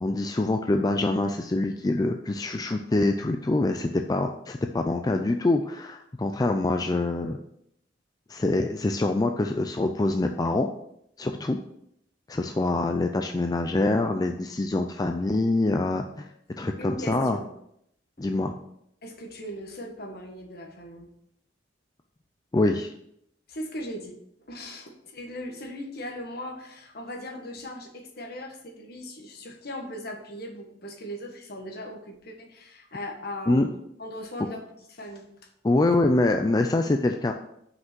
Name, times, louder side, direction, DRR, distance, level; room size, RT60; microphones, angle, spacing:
voice 1, 0.0-7.4 8.3-10.7 11.2-11.6 12.3-16.3 16.6-17.4 18.2-18.6 22.5-22.9 33.5-33.7 35.6-37.3, left 2 dB, 20° left, 5 dB, 0.4 m, -25 dB
voice 2, 16.8-17.5 18.2-18.3 19.0-21.1 23.5-24.2 24.5-34.6 34.9-35.3, equal, 55° left, 2 dB, 1.5 m, -38 dB
5.9 x 5.4 x 6.1 m, 0.75 s
head